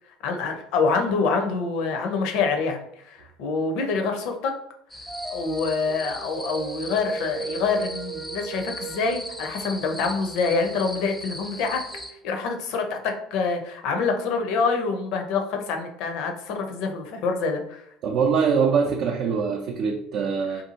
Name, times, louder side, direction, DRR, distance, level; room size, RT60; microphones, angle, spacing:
voice 1, 0.2-4.5 5.3-11.8 12.1-17.8, left 4 dB, 65° left, 4 dB, 0.5 m, -26 dB
sound 1, 4.9-12.1, left 1 dB, 5° left, 0.4 m, -39 dB
sound 2, 5.1-10.1 11.9-12.1, right 5 dB, 30° right, 0.8 m, -37 dB
voice 2, 18.0-20.6, right 6 dB, 60° right, 1 dB, 0.4 m, -23 dB
2.6 x 2.3 x 2.8 m, 0.73 s
hypercardioid pair, 70°, 0 cm